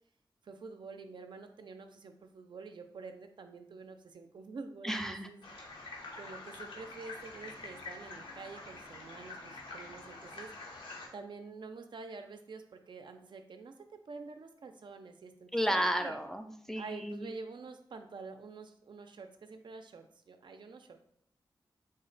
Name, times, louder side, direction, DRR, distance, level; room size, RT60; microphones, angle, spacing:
voice 1, 0.4-5.4 6.2-10.5 11.1-13.7 14.1-16.2 16.8-21.0, right 4 dB, 65° right, 7 dB, 0.4 m, -47 dB
voice 2, 4.8-5.3 15.5-17.3, equal, 5° left, 5 dB, 0.3 m, -33 dB
sound 1, 5.4-11.1, left 3 dB, 80° left, 0.8 m, -46 dB
3.7 x 2.1 x 3.9 m, 0.68 s
wide cardioid pair, 85°, 8 cm